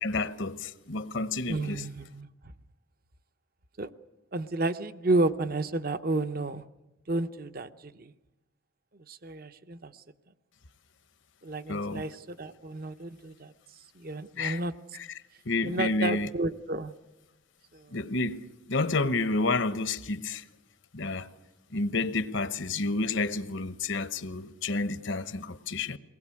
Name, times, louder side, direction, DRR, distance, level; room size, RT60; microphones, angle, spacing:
voice 1, 0.0-1.9 11.7-12.1 14.4-14.6 14.9-15.1 15.5-16.3 17.9-20.4 20.9-21.3 21.7-26.0, left 3 dB, 65° left, 1.0 m, -30 dB
voice 2, 1.5-2.3 3.8-3.9 4.3-6.6 7.1-8.1 9.1-9.9 11.4-13.5 14.0-14.7 15.6-16.9 17.7-17.9, right 2 dB, 45° right, 0.8 m, -31 dB
23.0 x 19.0 x 8.6 m
head